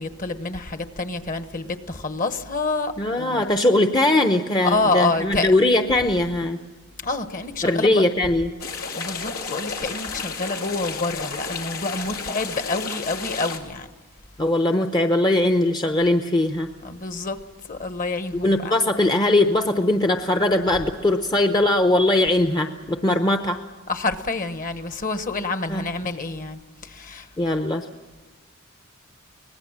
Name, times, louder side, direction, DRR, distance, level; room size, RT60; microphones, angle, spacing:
voice 1, 0.0-3.5 4.6-5.5 7.0-8.0 9.0-13.9 16.8-17.4 17.7-18.7 23.9-27.3, left 3 dB, 40° left, 1.2 m, -27 dB
voice 2, 3.0-6.6 7.6-8.5 14.4-16.7 18.4-23.6 25.7-25.8 27.4-27.9, left 1 dB, 20° left, 0.8 m, -20 dB
sound 1, 8.6-13.6, left 5 dB, 90° left, 2.4 m, -32 dB
24.0 x 19.0 x 7.3 m
head